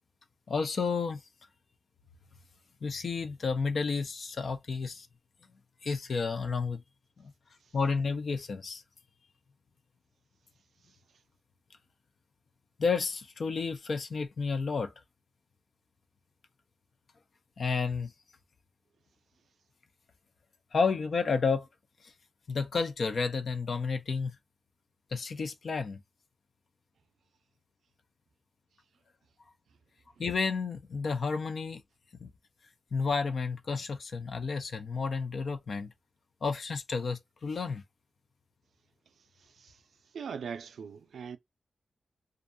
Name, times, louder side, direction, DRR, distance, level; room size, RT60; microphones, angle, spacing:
voice 1, 0.5-1.2 2.8-5.1 5.8-6.8 7.2-7.3 7.7-8.8 12.8-14.9 17.6-18.1 20.7-21.7 22.0-22.1 22.5-24.4 25.1-26.0 30.2-31.8 32.2-32.3 32.9-35.9 36.4-37.8, left 4 dB, 55° left, 0.4 m, -31 dB
voice 2, 40.1-41.4, right 6 dB, 90° right, 0.3 m, -40 dB
2.4 x 2.2 x 2.5 m
wide cardioid pair, 135°, 0 cm